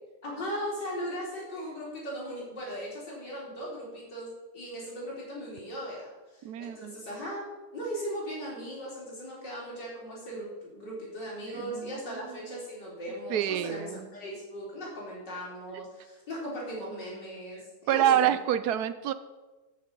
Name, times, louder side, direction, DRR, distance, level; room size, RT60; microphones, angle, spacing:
voice 1, 0.2-7.5 7.7-18.3, equal, 80° left, -5 dB, 4.6 m, -38 dB
voice 2, 6.4-6.9 11.5-12.0 13.3-14.1 17.9-19.1, right 11 dB, 70° right, 13 dB, 1.1 m, -27 dB
13.5 x 6.6 x 5.4 m, 1.2 s
omnidirectional pair, 1.8 m